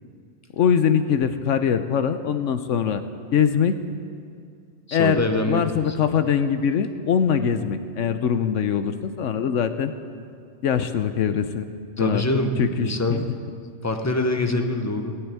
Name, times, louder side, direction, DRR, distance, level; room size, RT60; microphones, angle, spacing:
voice 1, 0.5-3.0 3.3-3.7 4.9-9.9 10.6-11.7 12.0-12.2 12.6-13.3, left 7 dB, 70° left, 9 dB, 1.1 m, -22 dB
voice 2, 4.9-5.8 12.0-13.2 13.8-15.1, left 2 dB, 15° left, 5 dB, 0.8 m, -24 dB
16.5 x 8.0 x 9.2 m, 2.3 s
omnidirectional pair, 1.4 m